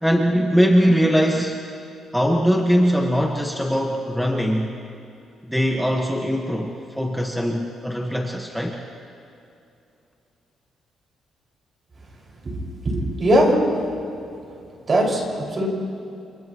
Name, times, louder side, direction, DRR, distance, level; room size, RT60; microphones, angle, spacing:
voice 1, 0.0-1.6 2.1-4.7 5.5-8.8, equal, ahead, 0 dB, 1.5 m, -21 dB
voice 2, 12.8-13.7 14.9-15.7, right 1 dB, 40° right, -1 dB, 5.7 m, -20 dB
30.0 x 27.5 x 3.1 m, 2.7 s
cardioid pair, 90°, 0 cm